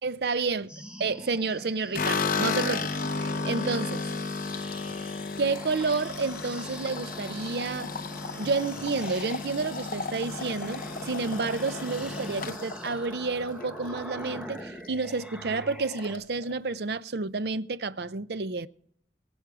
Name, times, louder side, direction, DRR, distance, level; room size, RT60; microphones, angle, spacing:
voice 1, 0.0-0.7 1.0-2.9 3.2-4.1 5.4-7.9 8.4-18.7, right 4 dB, 65° right, 0.6 m, -30 dB
sound 1, 0.7-16.1, equal, 5° right, 1.2 m, -43 dB
sound 2, 1.9-14.2 14.5-15.2 15.4-15.5 15.8-16.5, left 4 dB, 50° left, 0.7 m, -33 dB
22.0 x 8.1 x 4.9 m
head